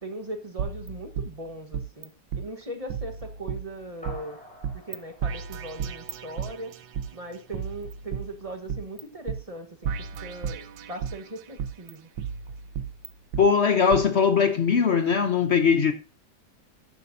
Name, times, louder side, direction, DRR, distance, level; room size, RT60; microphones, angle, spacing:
voice 1, 0.0-4.4 4.7-6.8 7.1-9.9 10.2-12.1, right 1 dB, 25° right, 1.1 m, -39 dB
sound 1, 0.6-2.1 2.3-2.4 2.9-4.2 4.6-5.0 5.2-7.1 7.5-9.0 9.3-9.4 9.8-11.2 11.6-13.4 13.9-14.0, right 7 dB, 85° right, 1.5 m, -33 dB
sound 2, 4.0-6.7, equal, 5° left, 4.0 m, -48 dB
voice 2, 13.4-15.9, left 6 dB, 55° left, 0.8 m, -20 dB
12.0 x 9.6 x 2.6 m
omnidirectional pair, 1.9 m